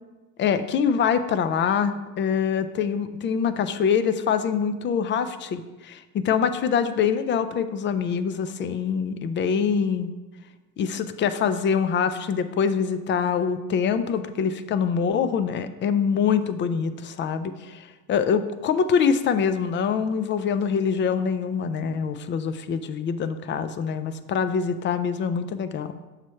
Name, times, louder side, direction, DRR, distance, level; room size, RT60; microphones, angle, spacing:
voice 1, 0.4-10.1 10.8-25.9, left 6 dB, 30° left, 11 dB, 0.4 m, -24 dB
7.3 x 3.2 x 5.6 m, 1.2 s
supercardioid pair, 105°, 41 cm